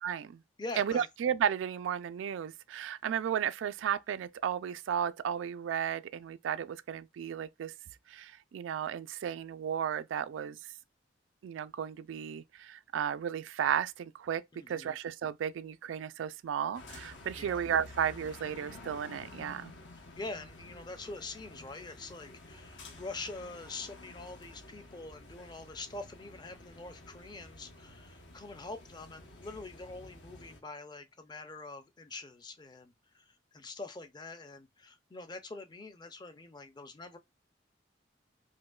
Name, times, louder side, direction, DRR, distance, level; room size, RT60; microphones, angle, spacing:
voice 1, 0.0-0.4 0.8-7.7 8.1-10.6 11.4-19.7, right 8 dB, 90° right, 0.3 m, -34 dB
voice 2, 0.6-1.1 14.5-15.0 17.3-17.6 20.2-37.2, left 3 dB, 25° left, 0.5 m, -45 dB
sound 1, 16.7-30.6, left 2 dB, 75° left, 1.0 m, -51 dB
5.0 x 2.1 x 2.3 m
head